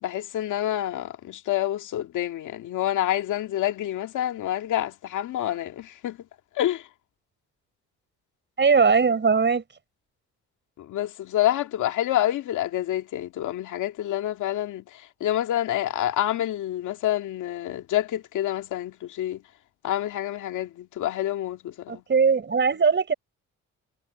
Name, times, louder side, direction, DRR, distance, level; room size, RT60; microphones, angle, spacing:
voice 1, 0.0-6.2 6.6-6.9 10.8-19.4 19.8-22.0, left 12 dB, 80° left, 2.0 m, -27 dB
voice 2, 8.6-9.6 21.9-23.1, right 5 dB, 35° right, 5.9 m, -20 dB
cardioid pair, 90°, 30 cm